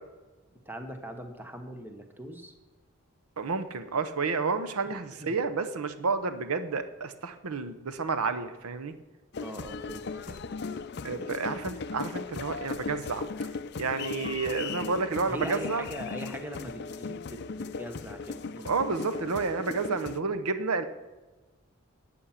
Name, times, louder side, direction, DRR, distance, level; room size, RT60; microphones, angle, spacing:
voice 1, 0.7-2.5 4.9-5.3 9.4-10.4 15.2-18.7, equal, 10° right, 5 dB, 1.0 m, -41 dB
voice 2, 3.4-8.9 11.0-13.3 13.8-15.8 18.6-20.8, right 4 dB, 90° right, 10 dB, 0.8 m, -30 dB
sound 1, 9.3-20.2, left 4 dB, 50° left, 0.5 m, -37 dB
11.5 x 8.7 x 5.7 m, 1.2 s
head